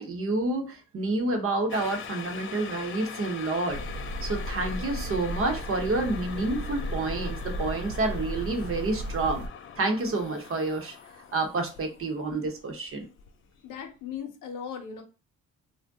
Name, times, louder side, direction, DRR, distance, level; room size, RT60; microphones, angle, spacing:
voice 1, 0.0-3.8 4.2-9.4 9.8-11.0 11.3-13.1, right 2 dB, 45° right, 5 dB, 0.8 m, -29 dB
sound 1, 1.7-13.8 14.1-14.2, left 7 dB, 45° left, 0.4 m, -43 dB
sound 2, 3.7-9.5, equal, 70° right, 0.6 m, -35 dB
voice 2, 13.6-15.0, left 7 dB, 85° left, 5 dB, 0.7 m, -38 dB
2.6 x 2.1 x 3.4 m, 0.32 s
cardioid pair, 90°, 30 cm